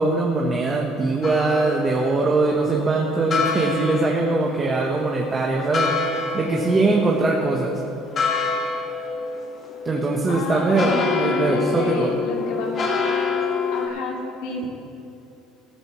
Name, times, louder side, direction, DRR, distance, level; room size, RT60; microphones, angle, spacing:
voice 1, 0.0-6.0 6.3-7.8 9.8-12.1, right 3 dB, 25° right, -1 dB, 1.1 m, -22 dB
sound 1, 1.2-13.9, left 4 dB, 40° left, 1.9 m, -27 dB
voice 2, 10.3-12.8 13.7-14.7, left 2 dB, 80° left, -1 dB, 2.2 m, -29 dB
14.0 x 13.5 x 3.2 m, 2.7 s
cardioid pair, 125°, 0 cm